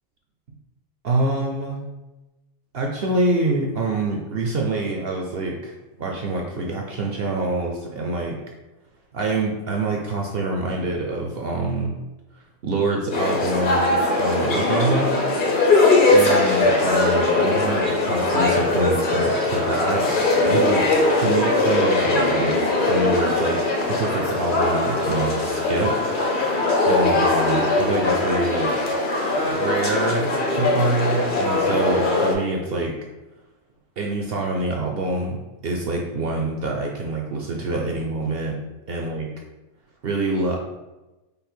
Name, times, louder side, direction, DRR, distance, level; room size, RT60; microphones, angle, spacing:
voice 1, 1.0-1.9 2.7-8.4 9.1-11.9 12.6-15.2 16.1-20.8 21.2-23.6 23.9-25.9 26.9-28.7 29.5-32.9 34.0-35.4 35.6-38.6 38.9-39.3 40.0-40.6, right 2 dB, 65° right, 0 dB, 0.5 m, -26 dB
sound 1, 13.1-32.3, left 2 dB, 45° left, 0.7 m, -20 dB
5.2 x 2.1 x 4.4 m, 1.1 s
omnidirectional pair, 1.6 m